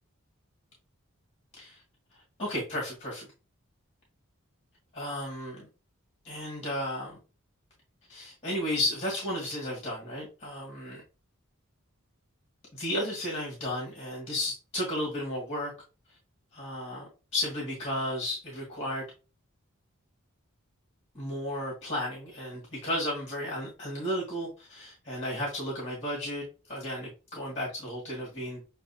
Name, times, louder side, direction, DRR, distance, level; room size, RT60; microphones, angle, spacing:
voice 1, 2.4-3.3 4.9-5.7 6.2-7.2 8.1-11.0 12.7-15.7 16.5-19.0 21.1-28.6, left 1 dB, 30° left, -4 dB, 1.8 m, -33 dB
7.2 x 2.4 x 2.7 m, 0.32 s
head